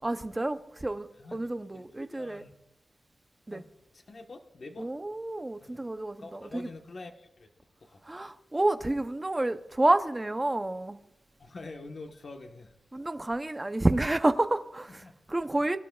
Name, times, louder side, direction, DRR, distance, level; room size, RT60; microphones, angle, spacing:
voice 1, 0.0-2.4 3.5-3.6 4.8-6.7 8.0-11.0 12.9-15.8, right 2 dB, 20° right, 0.6 m, -29 dB
voice 2, 1.7-2.5 3.5-3.7 4.1-4.9 5.6-5.8 6.2-7.5 7.8-8.0 11.4-12.7 15.0-15.1, left 3 dB, 50° left, 1.2 m, -45 dB
22.0 x 11.5 x 2.3 m
wide cardioid pair, 105°, 0 cm